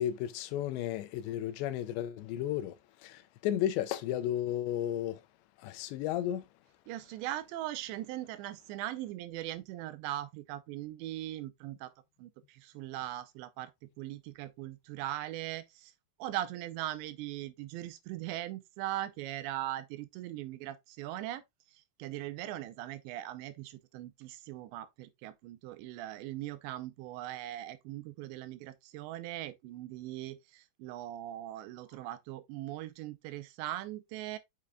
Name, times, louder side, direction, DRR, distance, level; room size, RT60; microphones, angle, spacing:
voice 1, 0.0-5.2 5.6-6.5, left 11 dB, 85° left, 2.9 m, -33 dB
voice 2, 6.9-11.9 12.2-13.7 14.0-15.9 16.2-21.4 22.0-34.4, right 14 dB, 90° right, 2.9 m, -40 dB
7.1 x 6.6 x 2.2 m
omnidirectional pair, 5.1 m